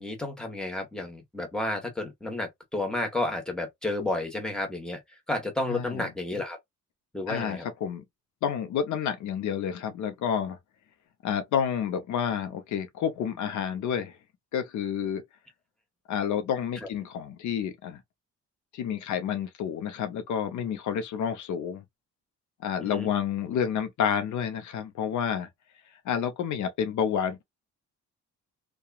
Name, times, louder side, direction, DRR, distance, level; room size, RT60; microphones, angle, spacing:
voice 1, 0.0-5.0 5.3-6.6 7.1-7.7 16.8-16.9 22.8-23.1, left 2 dB, ahead, 1.2 m, -31 dB
voice 2, 5.7-6.1 7.3-8.0 8.4-10.6 11.2-14.2 14.5-15.2 16.1-18.0 18.7-21.8 22.6-25.5 26.0-27.4, left 8 dB, 75° left, 0.7 m, -29 dB
2.8 x 2.3 x 2.3 m
cardioid pair, 90°, 30 cm